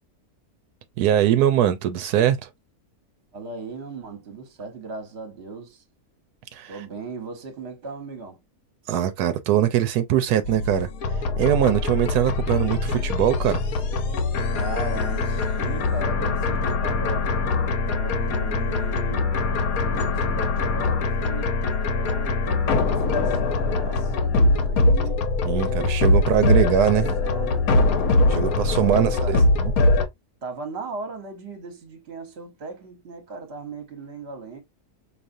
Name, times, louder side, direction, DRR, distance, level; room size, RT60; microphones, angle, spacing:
voice 1, 1.0-2.5 6.5-6.8 8.9-13.6 25.4-27.2 28.3-29.4 29.6-29.7, right 10 dB, 85° right, 1.1 m, -22 dB
voice 2, 3.3-5.8 6.7-8.4 14.5-17.3 17.9-19.3 19.8-21.6 21.9-25.3 25.6-26.9 27.2-27.7 28.9-29.5 30.4-34.6, right 4 dB, 45° right, 1.2 m, -38 dB
sound 1, 10.4-30.1, left 3 dB, 70° left, 1.2 m, -22 dB
4.8 x 2.8 x 2.5 m
omnidirectional pair, 1.6 m